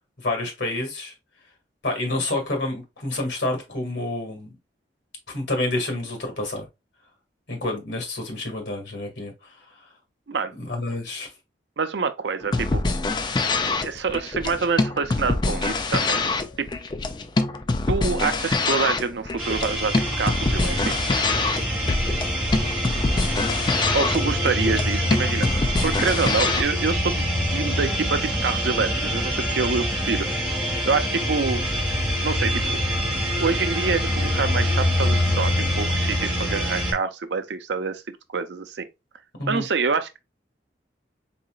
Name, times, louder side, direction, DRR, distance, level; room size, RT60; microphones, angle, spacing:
voice 1, 0.2-1.1 1.8-4.6 5.3-6.7 7.5-9.8 10.6-11.3 39.4-39.6, left 2 dB, 85° left, 1.8 m, -28 dB
voice 2, 11.8-12.8 13.8-16.2 16.6-16.7 17.9-21.1 21.7-21.8 23.9-30.3 30.8-31.6 32.2-32.8 33.4-38.0 38.3-38.9 39.5-40.2, right 4 dB, 80° right, 0.6 m, -26 dB
sound 1, 12.4-26.6, left 3 dB, 25° left, 0.3 m, -25 dB
sound 2, 19.4-36.9, equal, 5° right, 1.5 m, -25 dB
4.1 x 3.8 x 2.3 m
head